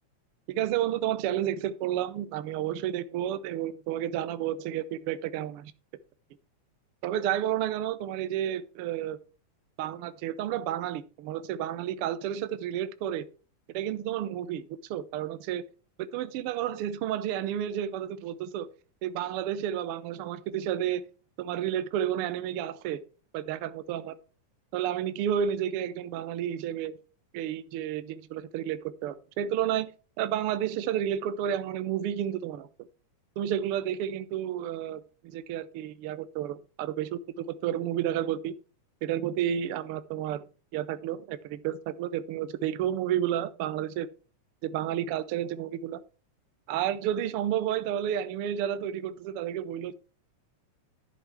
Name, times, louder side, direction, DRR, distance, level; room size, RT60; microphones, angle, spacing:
voice 1, 0.5-5.7 7.0-9.2 9.8-13.2 13.7-14.6 14.9-15.6 16.0-18.7 19.0-21.0 21.4-23.0 23.3-24.2 24.7-27.0 27.3-29.9 30.2-32.7 33.4-38.5 39.0-40.4 40.7-44.1 44.6-46.0 46.7-49.9, right 10 dB, 85° right, 1.2 m, -31 dB
11.0 x 6.0 x 4.6 m
omnidirectional pair, 3.4 m